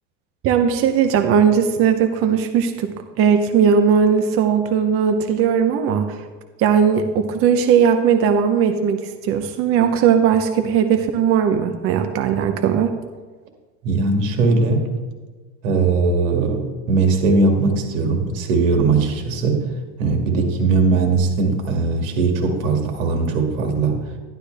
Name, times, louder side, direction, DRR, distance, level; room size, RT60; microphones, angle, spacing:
voice 1, 0.4-6.2 6.6-12.9, right 7 dB, 35° right, 7 dB, 0.7 m, -18 dB
voice 2, 13.8-14.9 15.6-19.6 20.0-24.0, right 3 dB, 85° right, 3 dB, 2.2 m, -19 dB
11.5 x 11.5 x 3.4 m, 1.4 s
supercardioid pair, 140°, 38 cm